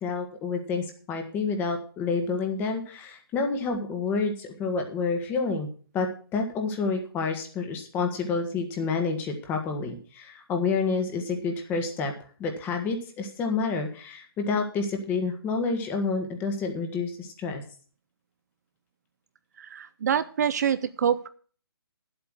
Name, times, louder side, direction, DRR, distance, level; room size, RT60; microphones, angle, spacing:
voice 1, 0.0-5.7 5.9-12.1 12.4-17.6, left 4 dB, 15° left, 4 dB, 1.6 m, -29 dB
voice 2, 19.6-21.3, right 8 dB, 45° right, 14 dB, 0.5 m, -26 dB
10.5 x 8.0 x 6.3 m, 0.42 s
hypercardioid pair, 150°, 13 cm